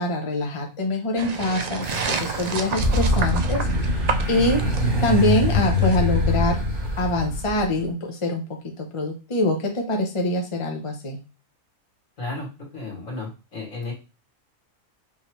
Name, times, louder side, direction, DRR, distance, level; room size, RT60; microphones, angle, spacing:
voice 1, 0.0-3.6 4.3-4.6 5.0-6.6 7.0-8.4 8.8-11.2, left 1 dB, 30° left, 2 dB, 0.8 m, -24 dB
sound 1, 1.2-6.0, right 5 dB, 80° right, 0.3 m, -31 dB
sound 2, 1.8-7.8, left 1 dB, 35° right, 2.3 m, -24 dB
voice 2, 12.2-12.5 12.7-13.9, left 3 dB, 70° left, -2 dB, 2.5 m, -33 dB
5.5 x 3.0 x 3.1 m, 0.29 s
omnidirectional pair, 1.4 m